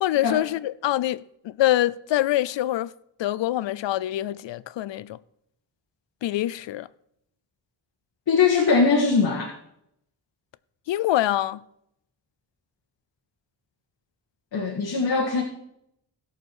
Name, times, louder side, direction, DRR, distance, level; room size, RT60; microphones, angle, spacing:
voice 1, 0.0-2.9 3.2-5.2 6.2-6.9 10.9-11.6, left 14 dB, 90° left, 0.5 m, -25 dB
voice 2, 8.3-9.5 14.5-15.4, left 4 dB, 60° left, 1.6 m, -21 dB
17.0 x 6.7 x 4.5 m
wide cardioid pair, 180°, 43 cm